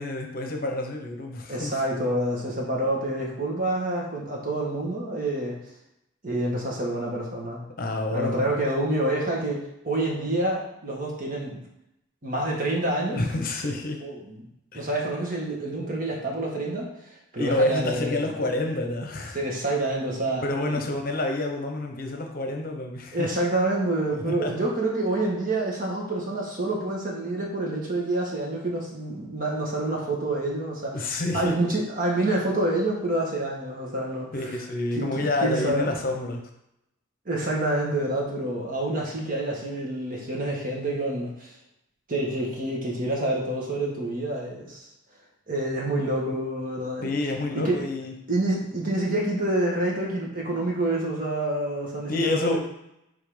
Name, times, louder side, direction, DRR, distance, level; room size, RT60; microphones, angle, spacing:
voice 1, 0.0-1.8 7.8-8.5 13.1-14.0 14.7-14.9 17.4-19.4 20.4-23.3 24.1-24.6 30.9-31.8 34.3-36.4 47.0-48.1 52.1-52.6, left 2 dB, 45° left, 3 dB, 0.9 m, -28 dB
voice 2, 1.5-5.6 6.2-7.6 8.1-11.6 12.2-13.2 14.0-14.5 14.7-16.9 17.3-18.5 19.3-20.8 23.1-34.6 35.0-35.9 37.2-41.5 42.1-44.8 45.5-47.1 47.6-47.8 48.3-52.6, right 1 dB, 45° right, -2 dB, 1.5 m, -27 dB
5.7 x 3.8 x 5.0 m, 0.82 s
head